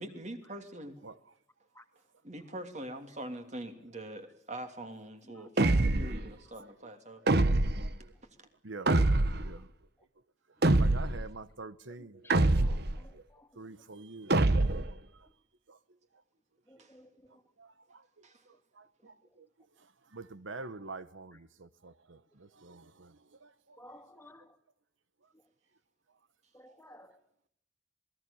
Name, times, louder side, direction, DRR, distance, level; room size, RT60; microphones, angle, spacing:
voice 1, 0.0-0.9 2.2-7.2 16.8-16.9 18.2-18.4, right 1 dB, 40° right, 3.1 m, -43 dB
sound 1, 5.6-6.2 7.3-7.9 8.9-9.5 10.6-11.3 12.3-13.0 14.3-14.9, right 2 dB, 55° right, 1.1 m, -25 dB
voice 2, 6.6-6.9 7.2-7.3 7.8-7.9 8.6-9.7 10.8-12.3 12.6-12.8 13.1-13.2 13.6-14.5 15.2-15.3 15.7-15.8 17.6-18.0 18.8-19.5 20.1-23.1 23.4-23.8, right 3 dB, 90° right, 1.1 m, -47 dB
voice 3, 12.2-12.8 13.3-13.5 16.7-17.1 23.8-24.4 26.5-27.1, left 1 dB, 10° left, 2.3 m, -54 dB
27.0 x 20.0 x 7.2 m
head